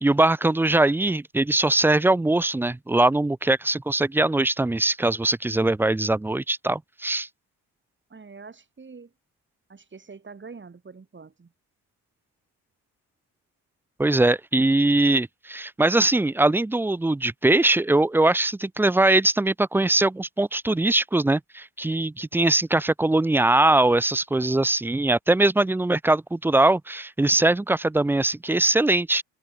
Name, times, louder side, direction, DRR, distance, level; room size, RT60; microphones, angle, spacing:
voice 1, 0.0-7.3 14.0-29.2, right 2 dB, 5° right, 0.3 m, -21 dB
voice 2, 8.1-9.1 9.7-11.5, right 4 dB, 25° right, 2.8 m, -44 dB
cardioid pair, 80°, 42 cm